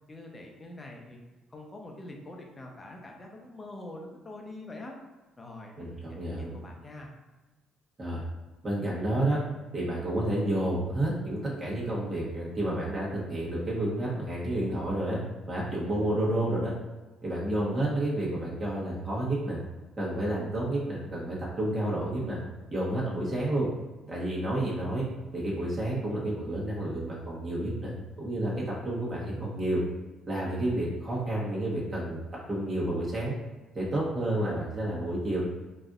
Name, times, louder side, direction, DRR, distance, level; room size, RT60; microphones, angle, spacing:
voice 1, 0.1-1.2 1.5-4.9 5.4-7.1, left 2 dB, 30° left, 0 dB, 0.8 m, -45 dB
voice 2, 5.8-6.5 8.0-8.2 8.6-9.4 9.7-15.2 15.5-16.7 17.2-19.6 20.0-22.4 22.7-23.7 24.1-25.1 25.3-29.8 30.3-32.2 32.5-33.3 33.7-35.4, right 1 dB, 30° right, -6 dB, 1.2 m, -30 dB
4.1 x 2.5 x 2.4 m, 1.2 s
supercardioid pair, 70°, 0 cm